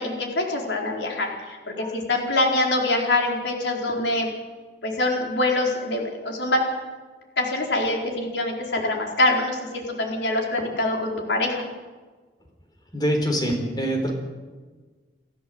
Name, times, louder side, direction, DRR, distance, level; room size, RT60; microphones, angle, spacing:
voice 1, 0.0-4.3 4.8-6.6 7.4-11.6, left 2 dB, 85° left, 1 dB, 4.5 m, -24 dB
voice 2, 12.9-14.1, equal, 25° left, 3 dB, 4.3 m, -25 dB
29.5 x 13.5 x 7.9 m, 1.4 s
head